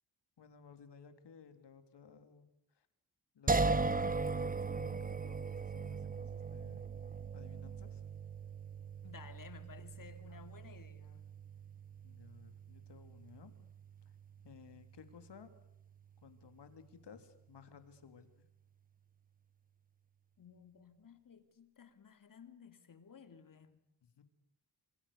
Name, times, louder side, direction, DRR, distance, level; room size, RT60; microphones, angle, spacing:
voice 1, 0.4-2.9 3.3-6.9 7.3-8.0 10.3-10.4 12.0-13.7 14.4-15.5 16.2-18.5 24.0-24.2, left 6 dB, 80° left, 3.4 m, -57 dB
sound 1, 3.5-16.5, right 3 dB, 20° right, 1.0 m, -39 dB
voice 2, 9.0-11.3 20.4-23.7, left 6 dB, 50° left, 2.9 m, -56 dB
27.5 x 27.0 x 6.9 m
wide cardioid pair, 160°, 41 cm